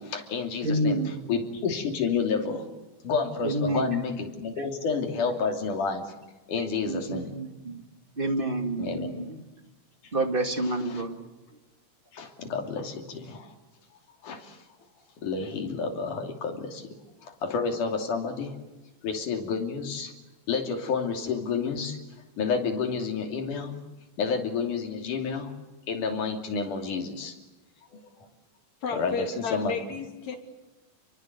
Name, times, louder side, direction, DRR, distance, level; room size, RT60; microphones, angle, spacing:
voice 1, 0.0-1.0 1.3-2.7 3.0-6.1 6.5-7.4 8.8-9.2 10.9-11.0 12.1-13.5 14.2-14.6 15.2-17.0 17.2-18.5 19.0-20.1 20.5-22.0 22.4-23.8 24.2-25.5 25.9-27.3 27.9-28.0 28.9-29.7, left 5 dB, 80° left, 4 dB, 4.4 m, -30 dB
voice 2, 0.6-1.3 3.4-3.9 6.8-7.8 8.2-9.4 10.1-11.2, right 1 dB, 20° right, 6 dB, 1.8 m, -28 dB
voice 3, 28.8-30.4, left 6 dB, 60° left, 4 dB, 4.2 m, -32 dB
30.0 x 23.0 x 8.1 m, 1.1 s
omnidirectional pair, 3.5 m